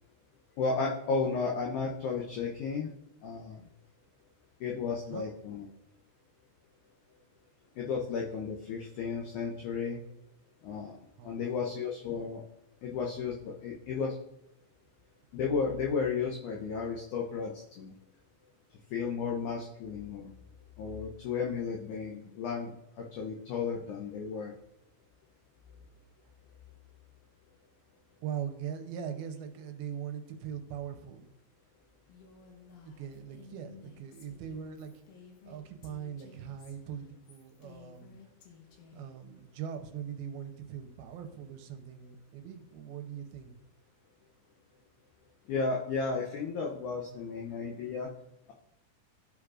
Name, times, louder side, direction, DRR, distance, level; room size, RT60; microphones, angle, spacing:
voice 1, 0.6-2.9 3.2-3.6 4.6-5.7 7.8-10.0 10.6-10.9 11.2-12.4 12.8-14.1 15.3-17.9 18.9-20.3 20.8-22.7 23.0-24.5 45.5-48.1, left 5 dB, 90° left, -1 dB, 1.7 m, -33 dB
voice 2, 11.2-11.6 28.2-31.3 32.9-35.1 35.4-38.2 38.9-43.6, right 8 dB, 80° right, 6 dB, 2.5 m, -41 dB
Female speech woman speaking, 32.1-39.1, left 6 dB, 70° left, 2.8 m, -55 dB
14.0 x 4.7 x 2.4 m, 0.81 s
omnidirectional pair, 4.5 m